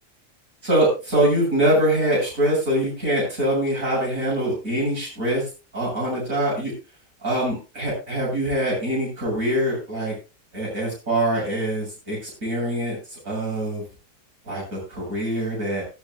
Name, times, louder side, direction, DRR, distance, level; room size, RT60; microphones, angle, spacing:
voice 1, 0.6-5.4 5.7-6.7 7.2-10.1 10.5-13.8 14.4-15.8, right 1 dB, 55° right, -4 dB, 8.3 m, -24 dB
20.0 x 10.5 x 2.3 m, 0.31 s
omnidirectional pair, 1.7 m